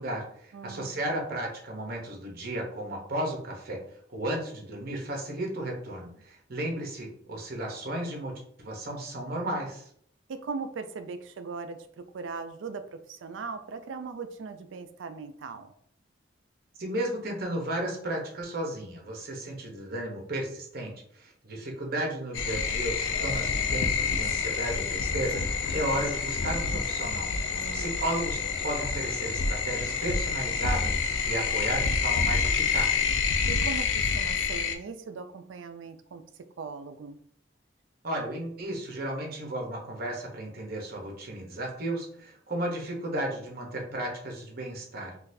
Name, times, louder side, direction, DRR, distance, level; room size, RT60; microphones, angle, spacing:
voice 1, 0.0-3.8 4.1-8.3 8.6-9.9 16.8-28.4 28.6-33.1 38.0-45.1, right 1 dB, 55° right, 1 dB, 0.9 m, -34 dB
voice 2, 0.5-1.0 10.3-15.7 27.5-28.0 33.5-36.2 36.6-37.2, right 4 dB, 80° right, 9 dB, 0.4 m, -39 dB
sound 1, 22.3-34.7, left 5 dB, 85° left, 0.4 m, -28 dB
3.8 x 2.4 x 2.6 m, 0.64 s
head